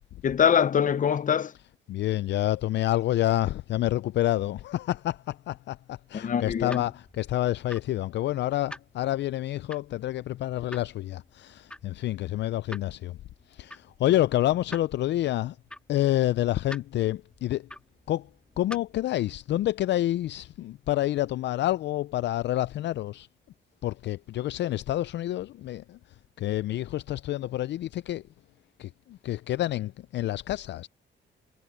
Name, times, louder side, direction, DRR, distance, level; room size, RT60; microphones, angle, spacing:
voice 1, 0.2-1.5 6.1-6.9, left 8 dB, 40° left, 0.8 m, -23 dB
voice 2, 1.9-13.2 13.5-15.6 15.9-17.7 18.1-18.3 18.6-23.3 23.8-28.2 28.8-30.9, left 14 dB, 65° left, 0.4 m, -28 dB
sound 1, 6.6-19.1, left 1 dB, 5° left, 2.7 m, -48 dB
cardioid pair, 90°, 20 cm